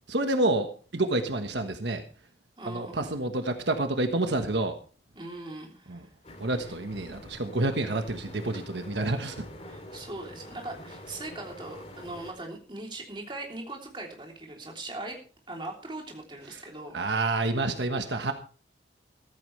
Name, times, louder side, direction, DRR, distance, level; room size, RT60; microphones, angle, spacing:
voice 1, 0.1-2.0 2.7-4.8 5.9-6.1 6.4-9.3 16.5-16.6 16.9-18.3, right 2 dB, 80° right, 6 dB, 1.4 m, -28 dB
voice 2, 2.6-3.1 5.1-6.1 6.5-6.7 9.7-15.2 15.5-17.0 18.1-18.3, right 2 dB, 25° right, 1 dB, 3.2 m, -40 dB
sound 1, 6.2-12.3, left 1 dB, 35° left, 3.0 m, -46 dB
15.0 x 14.5 x 3.3 m, 0.39 s
head